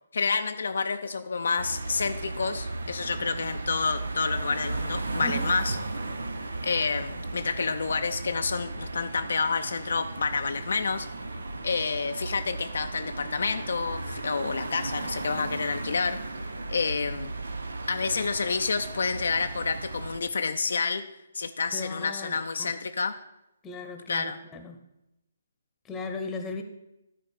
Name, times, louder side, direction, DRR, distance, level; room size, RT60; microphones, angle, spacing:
voice 1, 0.1-5.8 6.6-11.1 11.6-16.2 16.7-17.3 17.9-21.0 21.3-23.1 24.1-24.4, left 4 dB, 60° left, 7 dB, 0.5 m, -29 dB
sound 1, 1.6-20.2, right 2 dB, 70° right, 0.7 m, -35 dB
voice 2, 5.2-5.5 21.7-22.7 23.6-24.8 25.8-26.6, left 2 dB, 15° left, 5 dB, 1.0 m, -37 dB
11.0 x 4.2 x 6.5 m, 0.88 s
figure-of-eight pair, 135°, 0 cm